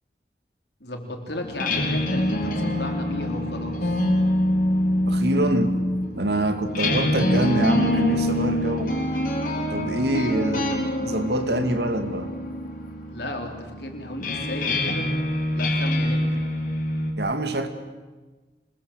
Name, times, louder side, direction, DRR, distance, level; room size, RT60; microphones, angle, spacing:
voice 1, 0.8-4.1 13.1-15.1 15.5-16.4, left 1 dB, 75° left, 3 dB, 4.1 m, -34 dB
sound 1, 1.4-17.1, left 1 dB, 50° left, 4.1 m, -25 dB
voice 2, 5.1-5.7 6.1-8.9 9.7-12.3 17.2-17.7, right 1 dB, 75° right, 8 dB, 2.3 m, -25 dB
26.0 x 20.5 x 8.2 m, 1.3 s
head